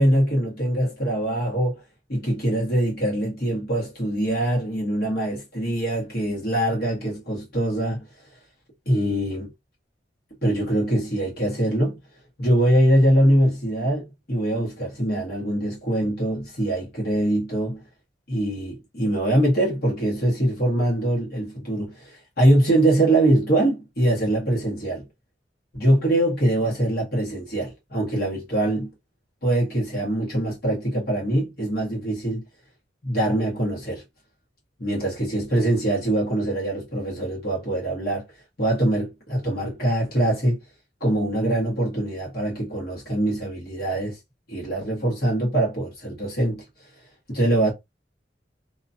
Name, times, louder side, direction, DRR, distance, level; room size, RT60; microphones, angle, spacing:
voice 1, 0.0-1.8 2.1-8.0 8.8-9.5 10.4-12.0 12.4-17.8 18.3-25.0 25.7-28.9 29.4-32.4 33.0-34.0 34.8-38.2 38.6-40.6 41.0-44.2 44.5-46.6 47.3-47.7, right 1 dB, 60° left, 1.5 m, -23 dB
2.9 x 2.6 x 2.4 m
head